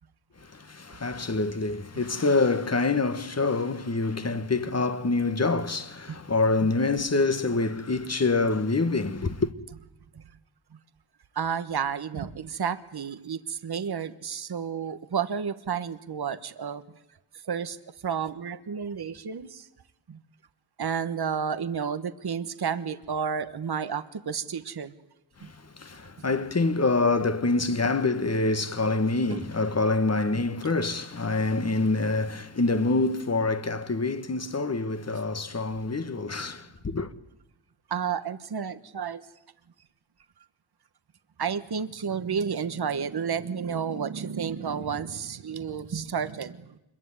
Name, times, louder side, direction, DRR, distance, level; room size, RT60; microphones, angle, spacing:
voice 1, 0.5-9.5 25.4-37.1, left 3 dB, 35° left, 1.5 m, -26 dB
voice 2, 11.3-16.8 17.5-17.8 18.0-19.7 20.1-20.2 20.8-24.9 25.4-25.5 29.3-29.4 30.3-30.5 37.9-39.2 41.4-46.8, right 7 dB, 55° right, 1.3 m, -31 dB
25.5 x 22.5 x 9.7 m
wide cardioid pair, 80°, 45 cm